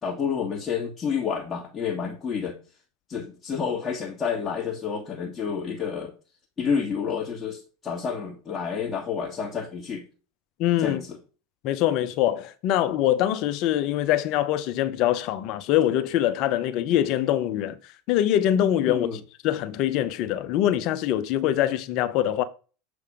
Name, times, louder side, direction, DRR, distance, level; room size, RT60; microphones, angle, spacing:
voice 1, 0.0-2.6 3.1-6.1 6.6-10.1 10.8-11.2 18.9-19.2, left 6 dB, 25° left, 1.7 m, -29 dB
voice 2, 10.6-11.0 11.6-17.8 18.1-19.1 19.4-22.4, left 12 dB, 55° left, 0.8 m, -23 dB
6.8 x 3.5 x 5.0 m
hypercardioid pair, 90°, 0 cm